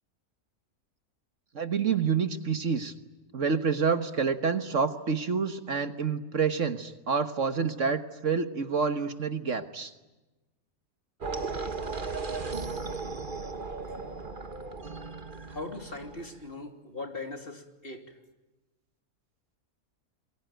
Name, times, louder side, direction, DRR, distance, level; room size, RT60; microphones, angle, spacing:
voice 1, 1.5-2.9 3.3-9.9, right 5 dB, 55° right, 1.7 m, -28 dB
sound 1, 11.2-16.4, right 4 dB, 35° right, 1.7 m, -36 dB
voice 2, 15.5-18.2, left 2 dB, 40° left, 3.4 m, -40 dB
28.0 x 22.5 x 9.2 m
omnidirectional pair, 1.5 m